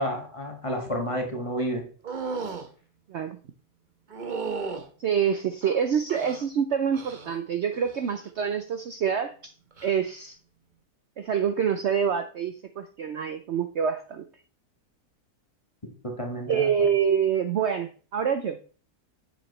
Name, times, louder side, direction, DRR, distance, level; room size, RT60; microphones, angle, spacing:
voice 1, 0.0-1.9 16.0-16.7, equal, 20° left, 2 dB, 1.4 m, -30 dB
sound 1, 2.0-2.7 4.1-4.9 5.6-6.4 6.9-7.4 7.7-8.2 9.7-9.9, right 4 dB, 35° right, 0.9 m, -34 dB
voice 2, 5.0-9.5 9.8-10.4 11.2-14.2 16.5-18.6, right 7 dB, 60° right, 8 dB, 0.7 m, -26 dB
7.4 x 7.0 x 3.1 m, 0.40 s
omnidirectional pair, 1.6 m